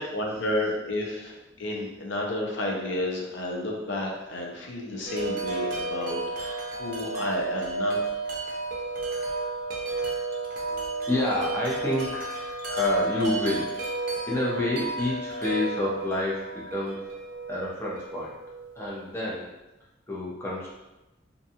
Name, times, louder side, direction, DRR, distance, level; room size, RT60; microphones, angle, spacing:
voice 1, 0.0-8.0, left 1 dB, 75° left, -1 dB, 0.6 m, -31 dB
Wind chime, 5.1-19.0, right 2 dB, 50° right, 0.5 m, -32 dB
voice 2, 9.9-12.2 12.7-13.7 14.3-17.0 17.5-18.4 18.8-19.5 20.1-20.7, left 1 dB, 15° left, -6 dB, 0.6 m, -29 dB
2.6 x 2.3 x 2.7 m, 1.0 s
head